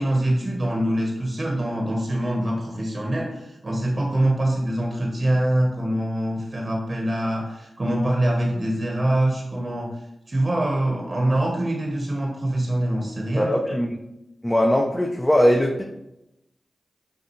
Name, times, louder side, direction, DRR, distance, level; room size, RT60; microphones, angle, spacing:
voice 1, 0.0-9.9 10.3-13.8, right 1 dB, 45° right, -1 dB, 0.9 m, -24 dB
voice 2, 13.3-13.9 14.4-15.8, equal, 20° left, 1 dB, 0.5 m, -20 dB
5.2 x 2.5 x 3.0 m, 0.88 s
cardioid pair, 40°, 0 cm